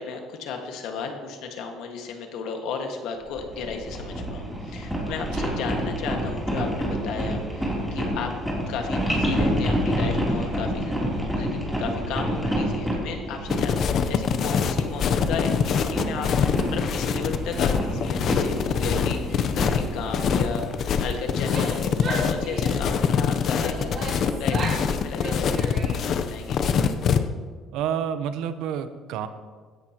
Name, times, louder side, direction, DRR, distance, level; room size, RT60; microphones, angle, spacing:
voice 1, 0.0-8.3 8.7-11.0 11.3-25.7 26.0-26.6, left 5 dB, 80° left, 3 dB, 1.7 m, -34 dB
sound 1, 3.4-21.2, equal, ahead, 3.3 m, -29 dB
sound 2, 13.5-27.2, left 7 dB, 50° left, 0.7 m, -24 dB
Female speech woman speaking / Yell, 21.3-23.0 23.6-24.9 25.2-26.2, right 2 dB, 45° right, 3.5 m, -34 dB
voice 2, 27.7-29.3, right 8 dB, 80° right, 10 dB, 0.8 m, -29 dB
16.5 x 11.0 x 3.0 m, 1.5 s
cardioid pair, 120°, 0 cm